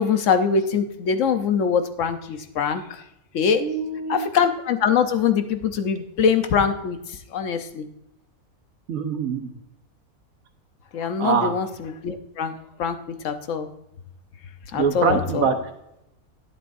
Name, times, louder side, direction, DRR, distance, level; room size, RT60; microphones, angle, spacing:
voice 1, 0.0-2.8 3.3-3.6 4.1-7.0 7.3-7.9 10.9-13.0 13.2-13.7 14.7-15.5, left 6 dB, 60° left, 8 dB, 1.1 m, -23 dB
voice 2, 3.6-4.2 8.9-9.5 11.2-11.5 14.7-15.6, right 6 dB, 65° right, 6 dB, 1.5 m, -23 dB
11.5 x 9.7 x 2.6 m, 0.83 s
omnidirectional pair, 1.6 m